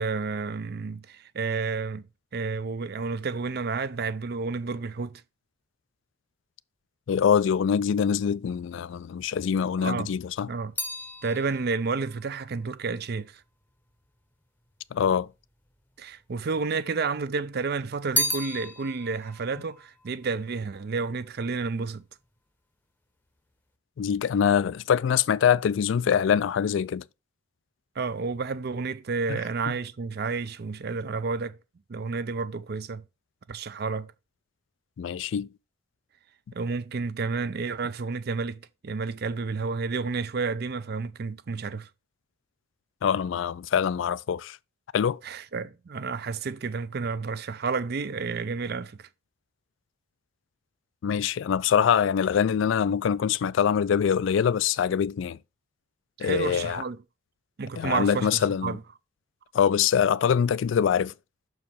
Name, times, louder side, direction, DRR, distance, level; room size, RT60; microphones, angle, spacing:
voice 1, 0.0-2.0 2.3-5.2 9.8-10.1 10.5-10.7 11.2-13.4 16.0-22.0 28.0-31.6 31.9-33.0 33.5-34.1 36.5-41.9 45.2-49.1 56.2-57.0 57.6-58.3 58.6-58.8, right 4 dB, 50° right, 0.5 m, -30 dB
voice 2, 7.1-10.5 14.9-15.3 24.0-27.0 29.3-29.4 35.0-35.5 43.0-44.6 44.9-45.2 51.0-55.4 56.2-56.8 57.8-58.8 59.5-61.1, left 7 dB, 65° left, 0.3 m, -24 dB
sound 1, 9.8-14.2 15.0-15.8 16.1-17.2 17.6-21.1 21.4-21.9, left 1 dB, 10° left, 0.8 m, -35 dB
6.2 x 4.7 x 5.3 m
head